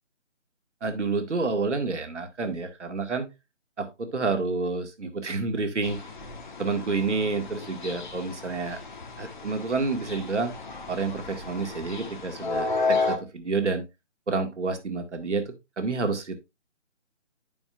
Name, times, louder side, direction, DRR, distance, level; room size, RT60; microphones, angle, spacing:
voice 1, 0.8-3.3 3.8-6.0 6.6-8.8 9.2-10.5 10.9-13.8 14.3-16.4, right 4 dB, 70° right, 7 dB, 1.8 m, -29 dB
sound 1, 5.8-13.2, left 3 dB, 40° left, 1.4 m, -33 dB
11.0 x 5.2 x 2.5 m, 0.24 s
figure-of-eight pair, 160°, 37 cm